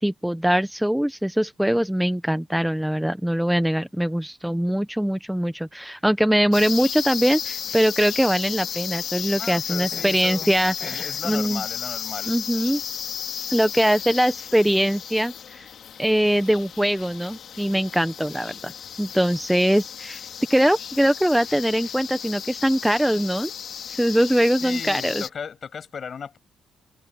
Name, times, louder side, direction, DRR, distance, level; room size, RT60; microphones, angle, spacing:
voice 1, 0.0-11.6 12.3-12.8 13.5-15.7 16.0-18.7 19.0-20.2 20.5-23.5 23.9-25.2, equal, 5° right, 0.9 m, -22 dB
sound 1, 6.5-25.3, left 8 dB, 65° left, 4.4 m, -34 dB
voice 2, 9.4-10.5 10.8-12.4 24.6-26.4, left 6 dB, 50° left, 6.8 m, -36 dB
cardioid pair, 90°, 0 cm